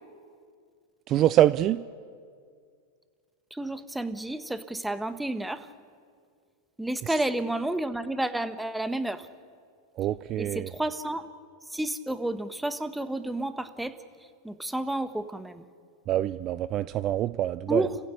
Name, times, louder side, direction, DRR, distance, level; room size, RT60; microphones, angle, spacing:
voice 1, 1.1-1.8 10.0-10.7 16.1-17.9, right 13 dB, 40° right, 15 dB, 0.5 m, -25 dB
voice 2, 3.5-5.7 6.8-9.3 10.4-11.3 11.6-13.9 14.4-15.7 17.7-18.0, right 1 dB, 5° right, 10 dB, 1.4 m, -31 dB
29.5 x 15.5 x 8.6 m, 2.2 s
hypercardioid pair, 100°, 0 cm